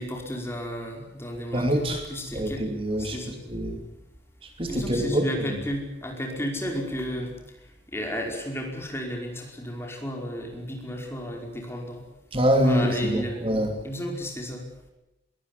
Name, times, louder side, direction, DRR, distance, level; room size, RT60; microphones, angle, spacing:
voice 1, 0.0-2.7 3.0-3.4 4.7-7.4 7.9-12.0 12.6-13.5 13.8-14.6, equal, 15° left, 2 dB, 5.1 m, -33 dB
voice 2, 1.5-2.0 2.3-3.8 4.4-5.4 12.3-13.7, equal, 30° right, 4 dB, 2.7 m, -25 dB
22.0 x 19.0 x 9.8 m, 0.95 s
head